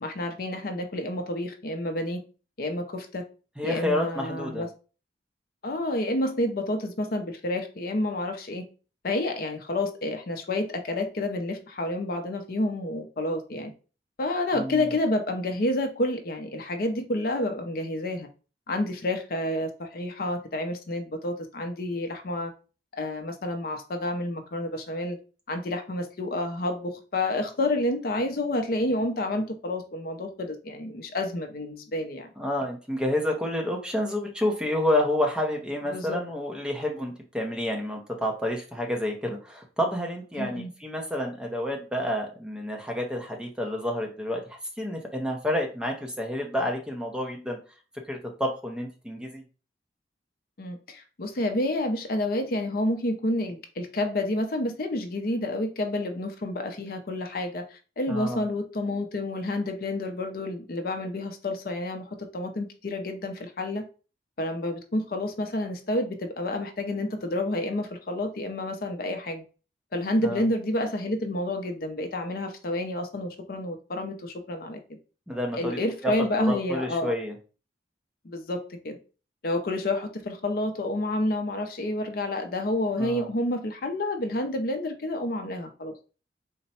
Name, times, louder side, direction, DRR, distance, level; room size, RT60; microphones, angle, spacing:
voice 1, 0.0-2.2 2.6-3.2 3.6-4.7 5.6-8.7 9.0-13.7 14.2-18.3 18.7-22.5 22.9-25.2 25.5-32.3 35.9-36.2 40.4-40.7 50.6-63.8 64.4-69.4 69.9-74.8 75.6-77.1 78.2-79.0 79.4-86.1, left 1 dB, 55° left, 0.5 m, -29 dB
voice 2, 3.6-4.7 14.5-14.9 32.4-47.6 48.1-49.4 58.1-58.4 70.2-70.5 75.3-76.1 76.4-77.3 83.0-83.3, left 1 dB, 5° right, 0.6 m, -29 dB
4.0 x 2.2 x 4.2 m
head